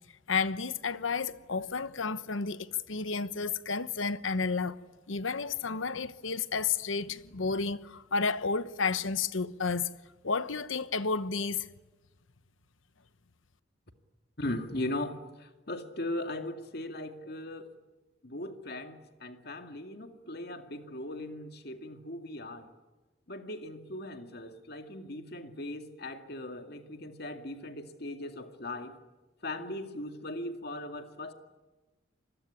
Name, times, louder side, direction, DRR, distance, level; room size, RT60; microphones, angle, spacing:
voice 1, 0.3-4.8 5.1-9.9 10.2-11.7, left 4 dB, 85° left, 1.1 m, -31 dB
voice 2, 14.4-17.7 18.2-22.7 23.3-29.0 29.4-31.3, left 1 dB, 55° left, 2.3 m, -39 dB
27.0 x 21.5 x 10.0 m
head